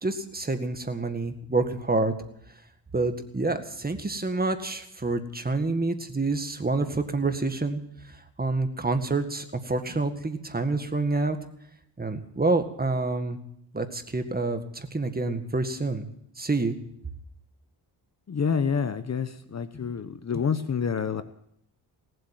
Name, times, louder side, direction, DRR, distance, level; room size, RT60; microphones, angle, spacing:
voice 1, 0.0-2.1 2.9-11.4 12.0-13.4 13.7-16.1 16.4-16.8, right 3 dB, 20° right, 8 dB, 1.9 m, -28 dB
voice 2, 18.3-21.2, left 6 dB, 40° left, 12 dB, 1.0 m, -28 dB
18.5 x 7.9 x 9.2 m, 0.71 s
cardioid pair, 70°, 43 cm